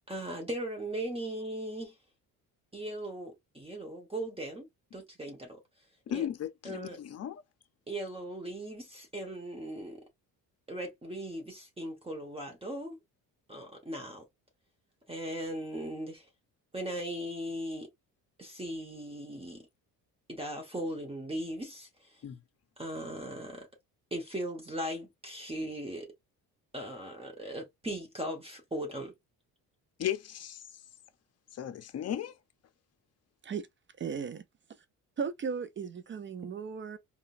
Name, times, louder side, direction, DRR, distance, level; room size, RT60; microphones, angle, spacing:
voice 1, 0.1-1.9 2.7-4.7 4.9-5.6 6.1-6.3 6.6-7.0 7.9-10.0 10.7-13.0 13.5-14.2 15.1-16.3 16.7-17.9 18.4-19.7 20.3-22.2 22.8-23.7 24.1-26.1 26.7-29.1, right 1 dB, 15° right, 1.0 m, -38 dB
voice 2, 6.1-7.4 22.2-22.4 30.0-30.6 31.5-32.3, left 10 dB, 40° left, 0.7 m, -35 dB
voice 3, 34.0-34.4 35.2-37.0, right 6 dB, 35° right, 0.4 m, -36 dB
3.7 x 2.3 x 2.5 m
cardioid pair, 100°, 37 cm